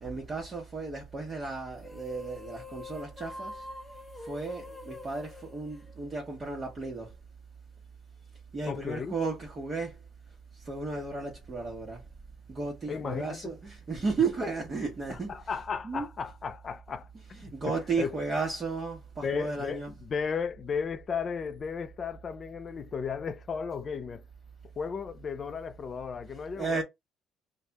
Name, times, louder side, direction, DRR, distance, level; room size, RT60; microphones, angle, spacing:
voice 1, 0.0-3.6 4.2-7.1 8.5-10.0 10.5-12.0 12.5-16.1 17.1-20.0 26.6-26.8, right 4 dB, 30° right, 1.2 m, -34 dB
sound 1, 1.7-6.5, left 2 dB, 10° left, 0.9 m, -45 dB
voice 2, 8.7-9.1 12.9-13.6 15.1-17.4 17.7-18.2 19.2-24.2 24.8-26.8, left 6 dB, 35° left, 0.4 m, -35 dB
3.2 x 2.3 x 4.1 m
cardioid pair, 110°, 0 cm